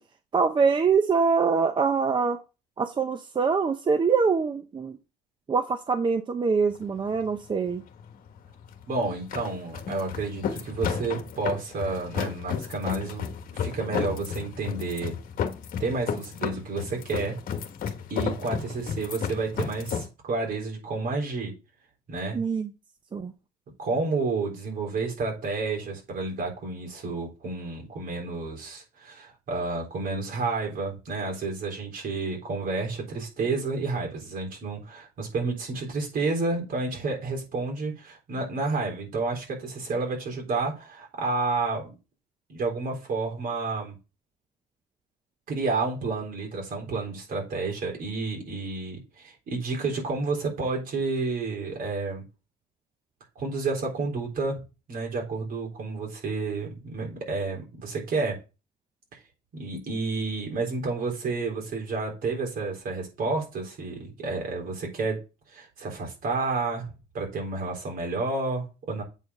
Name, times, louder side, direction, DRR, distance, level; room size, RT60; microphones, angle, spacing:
voice 1, 0.3-2.4 2.8-5.0 5.5-7.8 22.3-22.7 23.1-23.3, right 5 dB, 30° right, 0.7 m, -24 dB
sound 1, 6.7-20.1, left 7 dB, 55° left, 1.4 m, -33 dB
voice 2, 8.9-15.2 15.8-17.4 18.1-21.6 22.1-22.4 23.8-41.9 42.5-43.9 45.5-52.2 53.4-54.6 54.9-58.4 59.1-59.2 59.5-65.2 65.5-69.0, right 3 dB, 55° right, 4.0 m, -30 dB
8.1 x 4.5 x 5.5 m
cardioid pair, 110°, 17 cm